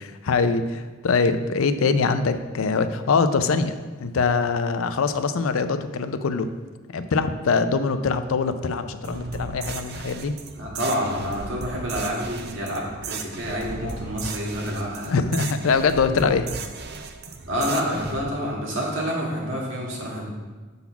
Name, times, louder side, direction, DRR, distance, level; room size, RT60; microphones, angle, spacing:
voice 1, 0.2-6.5 6.9-10.3 15.0-16.5, left 4 dB, 75° left, 11 dB, 0.4 m, -23 dB
sound 1, 9.0-18.2, right 4 dB, 50° right, 0.5 m, -35 dB
voice 2, 10.5-15.2 17.5-20.3, equal, 65° right, -3 dB, 1.9 m, -28 dB
7.0 x 4.0 x 5.8 m, 1.4 s
head